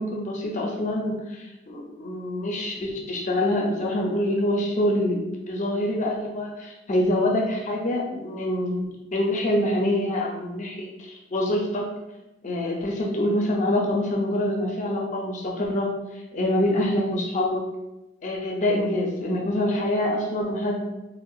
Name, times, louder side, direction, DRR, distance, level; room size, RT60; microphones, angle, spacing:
voice 1, 0.0-11.9 12.4-15.9 16.3-17.6 18.2-20.8, left 1 dB, 40° left, 0 dB, 0.5 m, -25 dB
3.6 x 2.1 x 2.3 m, 0.99 s
head